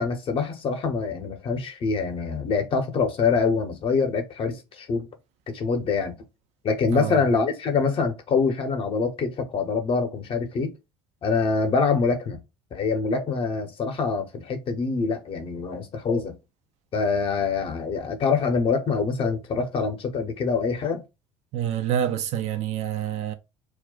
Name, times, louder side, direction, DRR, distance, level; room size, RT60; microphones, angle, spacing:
voice 1, 0.0-5.1 5.5-6.2 6.6-10.7 11.2-12.4 12.7-16.3 16.9-21.0, left 4 dB, 40° left, 0.8 m, -25 dB
voice 2, 21.5-23.3, right 10 dB, 50° right, 0.4 m, -27 dB
2.4 x 2.2 x 3.7 m
figure-of-eight pair, 60°, 15 cm